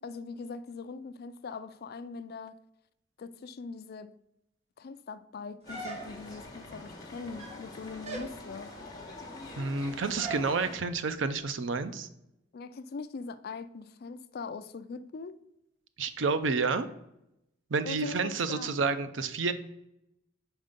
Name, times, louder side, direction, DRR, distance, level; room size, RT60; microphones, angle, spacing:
voice 1, 0.0-2.6 3.2-4.1 4.8-8.7 12.5-15.4 17.8-18.7, left 4 dB, 50° left, 12 dB, 0.4 m, -41 dB
sound 1, 5.6-10.8, left 2 dB, 20° left, 1.2 m, -45 dB
sound 2, 5.7-6.4 7.2-7.7 8.0-8.4 10.2-10.5, right 3 dB, 35° right, 1.0 m, -39 dB
voice 2, 9.6-12.1 16.0-16.9 17.7-19.5, right 4 dB, 70° right, 11 dB, 0.5 m, -29 dB
5.4 x 4.5 x 5.1 m, 0.83 s
head